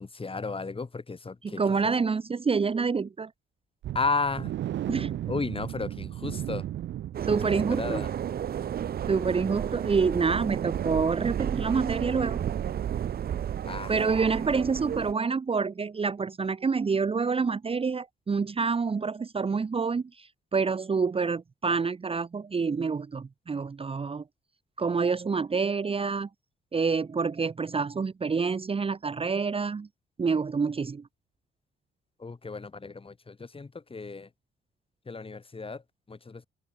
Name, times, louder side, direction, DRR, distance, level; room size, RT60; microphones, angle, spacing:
voice 1, 0.0-1.9 3.9-4.6 5.3-6.7 7.3-8.1 13.7-14.0 32.2-34.3 35.1-36.4, left 4 dB, 25° left, 7.5 m, -34 dB
voice 2, 1.6-3.3 4.9-5.3 7.2-8.0 9.1-12.4 13.9-24.2 24.8-26.3 26.7-29.9 30.2-31.0, right 5 dB, 30° right, 1.0 m, -27 dB
sound 1, 3.8-11.6 11.9-12.0 12.5-12.6, right 12 dB, 70° right, 1.1 m, -37 dB
sound 2, 7.1-15.1, right 9 dB, 50° right, 0.8 m, -32 dB
cardioid pair, 90°, 20 cm